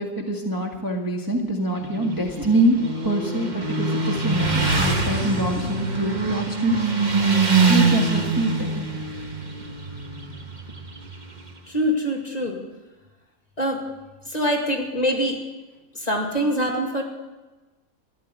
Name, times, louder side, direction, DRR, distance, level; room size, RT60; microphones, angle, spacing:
voice 1, 0.0-6.8 7.7-8.9, right 1 dB, 15° right, -2 dB, 1.5 m, -25 dB
Motorcycle, 1.7-11.5, right 3 dB, 35° right, 1.2 m, -24 dB
voice 2, 11.7-12.6 13.6-13.8 14.3-15.4 15.9-17.0, equal, 30° left, 1 dB, 2.3 m, -24 dB
13.5 x 11.0 x 8.1 m, 1.2 s
omnidirectional pair, 1.5 m